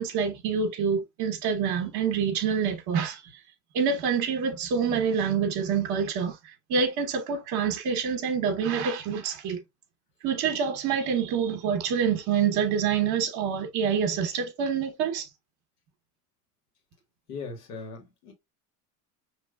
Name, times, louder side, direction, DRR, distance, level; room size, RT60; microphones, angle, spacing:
voice 1, 0.0-3.3 3.7-6.4 6.7-9.6 10.2-15.3, right 6 dB, 50° right, 1.0 m, -26 dB
voice 2, 17.3-18.3, left 4 dB, 75° left, 1.9 m, -39 dB
5.2 x 3.0 x 2.3 m
hypercardioid pair, 95°, 46 cm